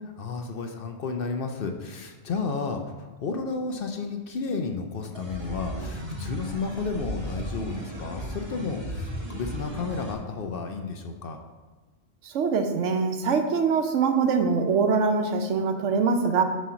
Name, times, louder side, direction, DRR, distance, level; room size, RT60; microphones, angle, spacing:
voice 1, 0.2-11.4, left 4 dB, 60° left, 4 dB, 0.7 m, -32 dB
sound 1, 5.1-10.1, equal, 25° right, 0.8 m, -35 dB
voice 2, 12.2-16.4, right 5 dB, 80° right, 6 dB, 1.1 m, -23 dB
7.6 x 3.1 x 5.6 m, 1.3 s
omnidirectional pair, 1.2 m